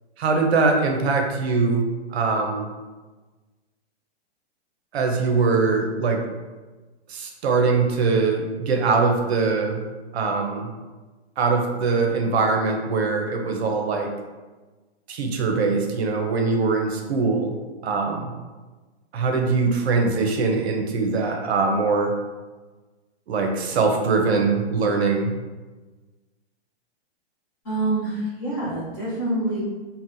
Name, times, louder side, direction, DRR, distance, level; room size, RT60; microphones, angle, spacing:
voice 1, 0.2-1.9 2.1-2.7 4.9-6.2 7.1-9.8 10.1-10.7 11.4-14.1 15.1-17.6 17.8-18.3 19.1-22.1 23.3-25.3, right 4 dB, 70° right, 2 dB, 0.6 m, -22 dB
voice 2, 27.6-29.6, right 2 dB, 20° left, -8 dB, 0.7 m, -26 dB
4.1 x 2.1 x 2.6 m, 1.3 s
hypercardioid pair, 175°, 33 cm